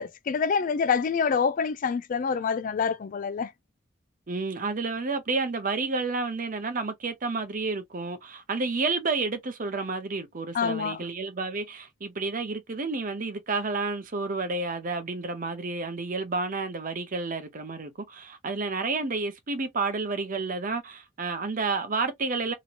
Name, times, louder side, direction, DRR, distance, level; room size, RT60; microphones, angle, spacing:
voice 1, 0.0-3.5 10.5-11.0, left 6 dB, 45° left, 0.3 m, -26 dB
voice 2, 4.3-22.5, right 3 dB, 45° right, 0.7 m, -30 dB
3.0 x 2.7 x 2.4 m
head